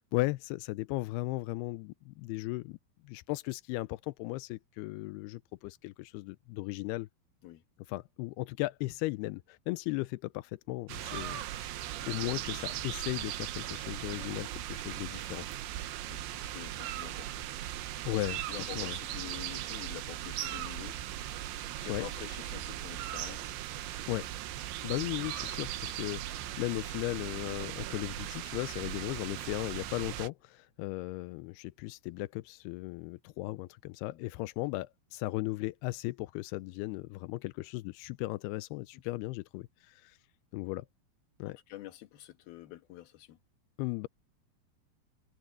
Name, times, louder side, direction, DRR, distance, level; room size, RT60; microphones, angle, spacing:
voice 1, 0.0-2.8 3.0-7.1 7.9-15.5 18.1-19.0 21.9-22.1 24.1-24.3 24.8-40.2 40.5-40.9 41.4-41.6 43.8-44.1, left 20 dB, 85° left, 2.3 m, -36 dB
sound 1, 10.9-30.3, right 13 dB, 85° right, 3.5 m, -38 dB
voice 2, 16.1-17.5 17.7-21.0 21.5-23.6 34.1-34.3 41.4-43.4, left 15 dB, 65° left, 3.0 m, -47 dB
omnidirectional pair, 5.1 m